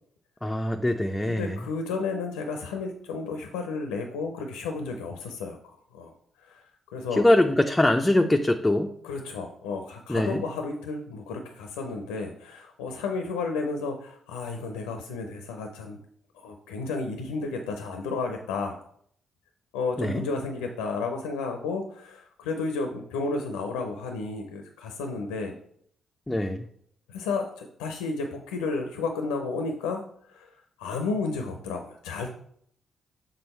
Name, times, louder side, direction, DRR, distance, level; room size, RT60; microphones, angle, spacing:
voice 1, 0.4-1.6 7.1-8.9 10.1-10.4 20.0-20.2 26.3-26.6, left 1 dB, 15° left, 4 dB, 0.5 m, -23 dB
voice 2, 1.3-5.6 5.9-6.6 6.9-7.2 9.0-16.0 16.3-18.8 19.7-25.5 27.1-30.0 30.3-32.3, left 4 dB, 80° left, 4 dB, 0.6 m, -32 dB
6.9 x 3.7 x 4.3 m, 0.67 s
hypercardioid pair, 40°, 0 cm